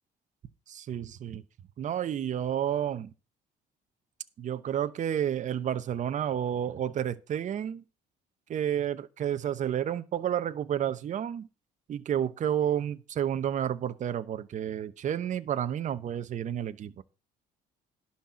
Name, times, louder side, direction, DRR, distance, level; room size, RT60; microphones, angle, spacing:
voice 1, 0.7-1.4 1.8-3.1 4.4-7.8 8.5-11.5 11.9-17.0, right 10 dB, 45° right, 0.9 m, -30 dB
11.5 x 4.3 x 7.5 m
cardioid pair, 110°, 17 cm